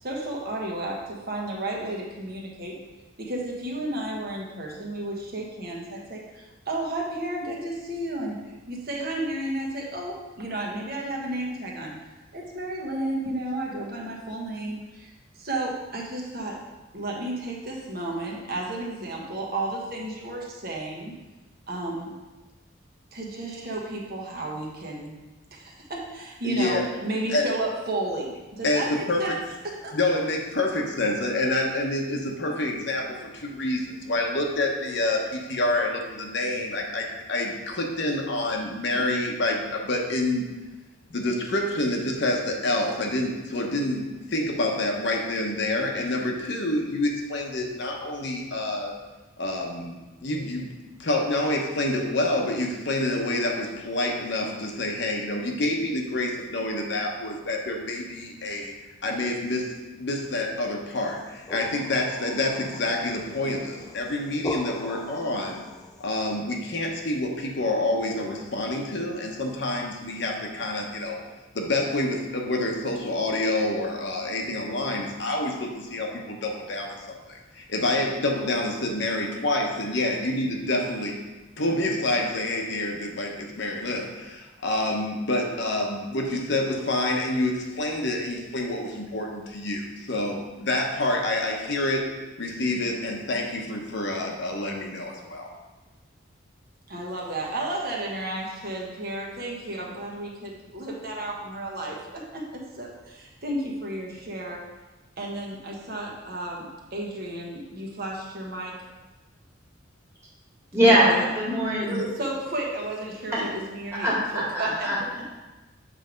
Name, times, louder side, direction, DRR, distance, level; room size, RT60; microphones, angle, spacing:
voice 1, 0.0-2.8 3.2-8.4 8.7-11.9 12.3-15.1 15.4-16.6 16.9-21.1 21.7-22.1 23.1-25.1 25.5-30.0 96.9-104.6 105.2-108.8 110.8-111.3 111.8-114.9 115.2-115.3, right 1 dB, 50° right, -2 dB, 1.3 m, -32 dB
voice 2, 26.4-26.8 27.3-27.5 28.6-29.4 29.9-40.5 41.1-48.9 49.4-50.7 51.0-58.7 59.0-59.7 60.0-65.6 66.0-71.2 71.5-81.2 81.6-92.1 92.4-95.5, left 2 dB, 60° left, 1 dB, 0.9 m, -27 dB
sound 1, 61.1-66.1, left 2 dB, 20° left, 0.4 m, -39 dB
voice 3, 110.7-112.0 113.3-113.4 114.0-115.2, equal, 15° right, -7 dB, 1.9 m, -22 dB
7.5 x 3.4 x 5.1 m, 1.1 s
head